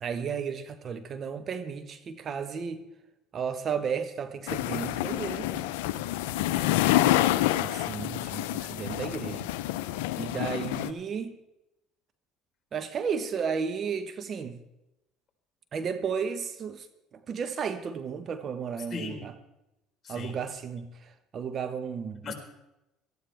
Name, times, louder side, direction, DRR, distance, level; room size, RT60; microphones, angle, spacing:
voice 1, 0.0-2.8 3.3-5.7 7.6-9.5 10.1-11.4 12.7-14.6 15.7-16.9 17.1-19.3 20.1-22.3, right 6 dB, 45° right, 1.0 m, -33 dB
sound 1, 4.5-10.9, left 14 dB, 85° left, 0.5 m, -28 dB
voice 2, 6.5-7.1 18.9-19.2 20.0-20.4 22.2-22.3, left 5 dB, 35° left, 4.0 m, -38 dB
17.5 x 13.5 x 3.4 m
supercardioid pair, 75°, 0 cm